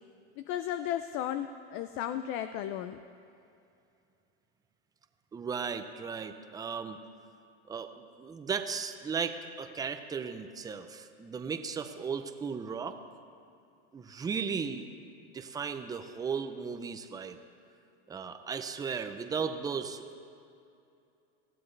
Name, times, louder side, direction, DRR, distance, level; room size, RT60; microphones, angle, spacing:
voice 1, 0.4-3.0, left 11 dB, 40° left, 10 dB, 0.5 m, -34 dB
voice 2, 5.3-7.0 7.7-13.0 13.9-14.9 15.3-17.4 18.1-20.2, right 6 dB, 10° right, 8 dB, 0.5 m, -36 dB
20.0 x 15.0 x 3.3 m, 2.6 s
supercardioid pair, 140°, 33 cm